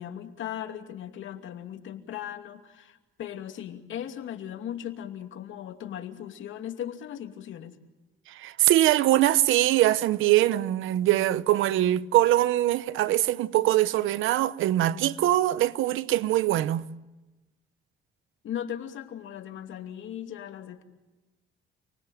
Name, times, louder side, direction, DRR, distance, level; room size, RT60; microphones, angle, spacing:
voice 1, 0.0-7.8 18.4-20.8, left 10 dB, 75° left, 2.6 m, -38 dB
voice 2, 8.3-16.8, right 14 dB, 90° right, 0.9 m, -23 dB
29.5 x 20.5 x 9.2 m
cardioid pair, 90°, 20 cm